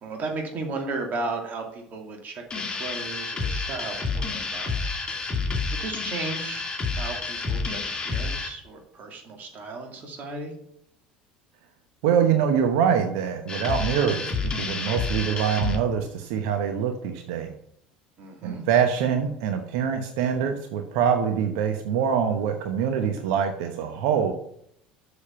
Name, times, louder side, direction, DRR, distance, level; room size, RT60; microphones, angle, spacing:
voice 1, 0.0-4.7 5.7-10.6 18.2-18.7, right 3 dB, 40° right, 2 dB, 2.5 m, -35 dB
sound 1, 2.5-8.5 13.5-15.8, left 4 dB, 20° left, 2.1 m, -29 dB
voice 2, 12.0-14.2 14.6-17.5 18.4-24.3, right 7 dB, 60° right, 5 dB, 1.0 m, -24 dB
7.3 x 6.5 x 5.7 m, 0.71 s
figure-of-eight pair, 70°, 4 cm